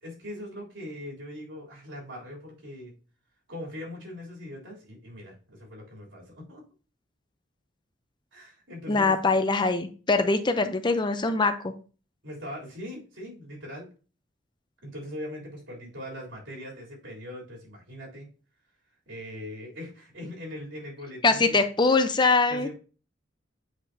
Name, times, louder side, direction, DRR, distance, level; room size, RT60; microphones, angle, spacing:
voice 1, 0.0-2.9 3.5-6.6 8.3-9.2 12.2-13.9 14.8-18.3 19.1-21.6 22.5-22.7, left 1 dB, 85° right, -3 dB, 3.5 m, -41 dB
voice 2, 8.9-11.7 21.2-22.7, left 3 dB, 25° left, 9 dB, 0.6 m, -23 dB
8.1 x 5.4 x 2.8 m, 0.36 s
head